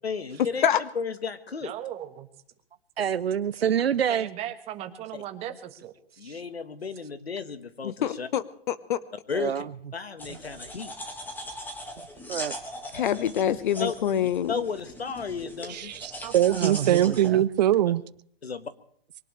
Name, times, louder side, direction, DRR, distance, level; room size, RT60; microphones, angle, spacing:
voice 1, 0.0-1.7 6.2-8.3 9.3-9.6 9.9-10.9 13.1-13.2 13.8-13.9 14.5-15.9 18.4-18.6, left 5 dB, 85° left, 1.6 m, -33 dB
voice 2, 1.6-2.3 4.1-5.9, right 11 dB, 20° right, 1.4 m, -37 dB
voice 3, 3.0-4.3 6.2-6.4 9.3-9.7 10.3-10.4 12.3-12.6 16.5-17.4, right 8 dB, 80° right, 0.6 m, -27 dB
voice 4, 7.8-9.0 12.9-14.5, left 9 dB, 55° left, 1.2 m, -26 dB
sound 1, 10.2-17.3, left 1 dB, 5° left, 1.9 m, -40 dB
voice 5, 15.7-18.0, right 12 dB, 45° right, 0.7 m, -22 dB
23.5 x 18.5 x 3.3 m
hypercardioid pair, 135°, 30 cm